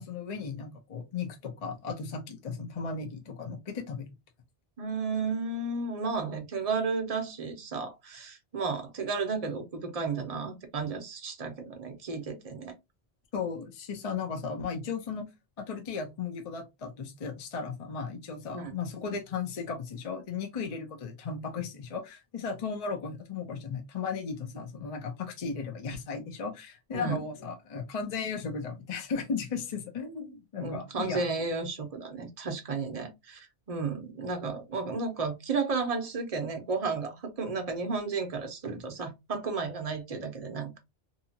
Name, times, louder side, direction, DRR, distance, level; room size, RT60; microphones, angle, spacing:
voice 1, 0.0-4.1 13.3-15.3 15.6-31.2, left 5 dB, 40° left, 0.6 m, -36 dB
voice 2, 4.8-12.7 18.5-18.7 26.9-27.2 30.6-40.8, right 4 dB, 40° right, 0.7 m, -33 dB
2.8 x 2.3 x 2.7 m
omnidirectional pair, 1.1 m